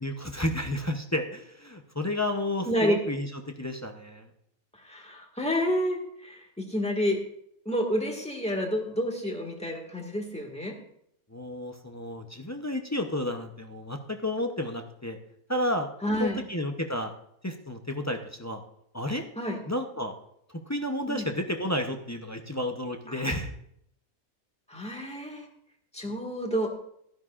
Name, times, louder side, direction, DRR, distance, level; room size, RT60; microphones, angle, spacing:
voice 1, 0.0-3.3 3.6-4.3 11.3-15.2 15.5-15.9 16.2-17.1 17.4-18.6 18.9-19.2 19.7-20.1 20.5-23.5 26.1-26.2, left 1 dB, 20° left, 3 dB, 0.4 m, -31 dB
voice 2, 2.6-3.0 4.8-7.2 7.6-10.7 16.0-16.5 19.4-19.6 21.1-21.3 23.1-23.2 24.7-25.5 25.9-26.7, equal, 5° left, 0 dB, 1.6 m, -29 dB
15.5 x 12.5 x 2.5 m, 0.72 s
omnidirectional pair, 1.6 m